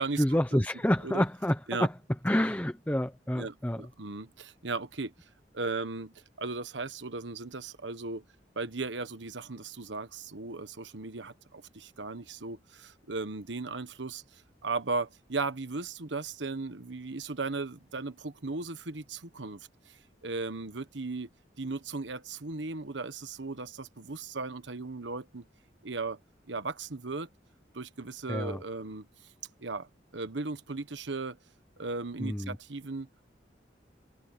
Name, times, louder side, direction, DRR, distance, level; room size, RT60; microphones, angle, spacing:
voice 1, 0.2-1.9 2.2-3.8 28.3-28.6 32.2-32.6, left 1 dB, 10° left, 0.8 m, -28 dB
voice 2, 3.3-5.1 5.5-8.2 8.5-19.7 20.2-21.3 21.6-25.4 25.8-26.2 26.5-27.3 27.7-29.1 29.6-31.4 31.8-33.1, right 3 dB, 90° right, 1.3 m, -36 dB
head